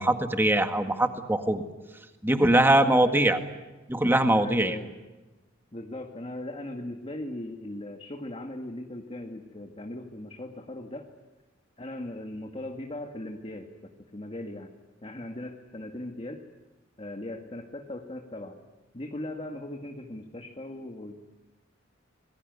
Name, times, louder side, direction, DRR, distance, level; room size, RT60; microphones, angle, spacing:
voice 1, 0.0-1.6 2.2-3.4 3.9-4.8, right 1 dB, 10° right, 7 dB, 1.8 m, -22 dB
voice 2, 2.6-3.3 4.4-4.9 5.7-11.1 11.8-13.7 14.1-14.7 15.0-16.4 17.0-18.6 18.9-21.2, left 1 dB, 30° left, 4 dB, 1.8 m, -38 dB
26.5 x 21.0 x 9.6 m, 1.1 s
head